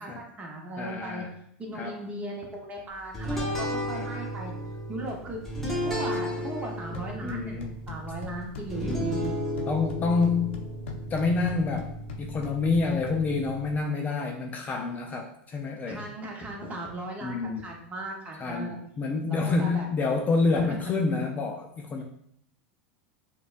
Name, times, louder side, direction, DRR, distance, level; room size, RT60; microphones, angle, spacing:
voice 1, 0.0-1.2 1.6-4.5 4.9-5.4 5.8-7.6 7.9-9.3 15.9-18.8 19.3-19.9 20.2-20.8, right 1 dB, 25° right, 0 dB, 0.9 m, -37 dB
voice 2, 0.8-1.3 1.7-2.0 3.9-4.1 7.2-7.7 9.7-10.5 11.1-11.9 12.2-16.1 17.2-17.7 18.4-22.0, left 4 dB, 25° left, 2 dB, 0.4 m, -28 dB
sound 1, 3.1-13.8, equal, 5° left, 1.1 m, -34 dB
sound 2, 6.7-13.7, left 4 dB, 80° left, 0.5 m, -43 dB
4.9 x 2.3 x 2.5 m, 0.69 s
supercardioid pair, 115°, 6 cm